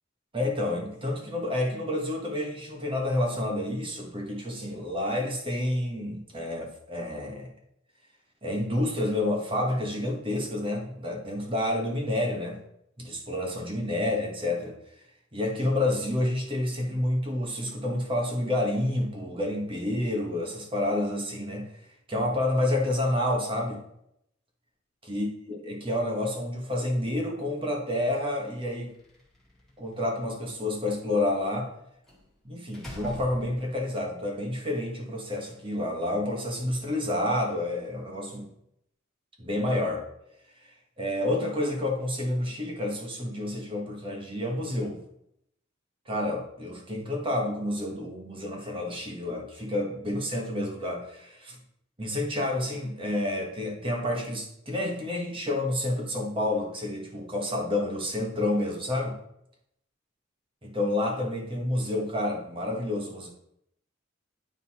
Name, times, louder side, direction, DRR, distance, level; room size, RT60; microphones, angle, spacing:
voice 1, 0.3-7.5 8.4-12.6 13.0-14.8 15.3-21.7 22.1-23.8 25.1-28.9 29.8-31.7 32.4-38.5 39.4-40.0 41.0-45.0 46.1-51.6 52.0-59.2 60.6-63.3, left 1 dB, 25° right, 0 dB, 1.5 m, -29 dB
Slam, 28.9-29.9 32.1-32.3 32.7-34.0, left 1 dB, ahead, 1.9 m, -43 dB
9.6 x 4.0 x 4.3 m, 0.77 s
head